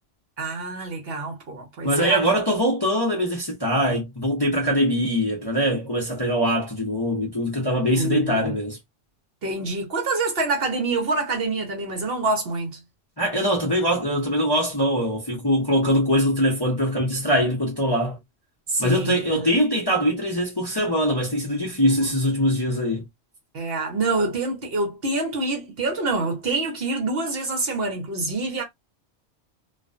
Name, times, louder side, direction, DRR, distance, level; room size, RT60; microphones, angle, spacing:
voice 1, 0.4-2.2 8.0-8.5 9.4-12.8 18.7-19.4 23.5-28.6, right 3 dB, 55° right, 0.9 m, -26 dB
voice 2, 1.8-8.8 13.2-18.2 18.8-23.0, equal, 25° left, 0.6 m, -22 dB
2.4 x 2.1 x 2.4 m
omnidirectional pair, 1.3 m